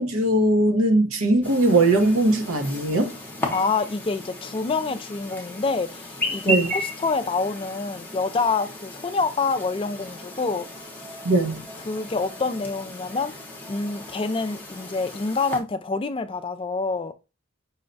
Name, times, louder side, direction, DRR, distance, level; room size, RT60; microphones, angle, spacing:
voice 1, 0.0-3.1 6.5-6.7 11.2-11.6, right 2 dB, 90° right, 0.9 m, -20 dB
Chirp tweet, 1.4-15.6, equal, 10° left, 0.7 m, -35 dB
voice 2, 3.5-10.7 11.9-13.3 13.7-17.1, left 4 dB, 25° left, 0.3 m, -27 dB
5.5 x 2.2 x 3.9 m
head